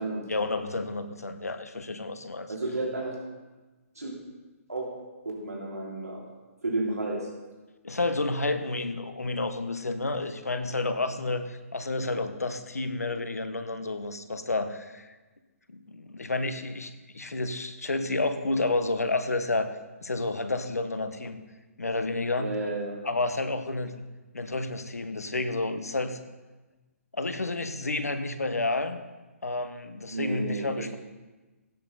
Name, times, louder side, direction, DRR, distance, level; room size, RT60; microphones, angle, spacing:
voice 1, 0.3-2.5 7.8-15.1 15.7-19.7 20.0-21.4 21.8-22.5 23.0-24.0 24.3-26.2 27.1-29.0 29.4-30.9, left 2 dB, 85° left, 9 dB, 1.1 m, -30 dB
voice 2, 2.5-3.1 3.9-4.1 4.7-4.9 5.2-6.2 6.6-7.3 22.4-22.9 30.1-31.0, right 2 dB, 85° right, -4 dB, 3.2 m, -31 dB
16.0 x 7.9 x 4.0 m, 1.2 s
figure-of-eight pair, 135°, 8 cm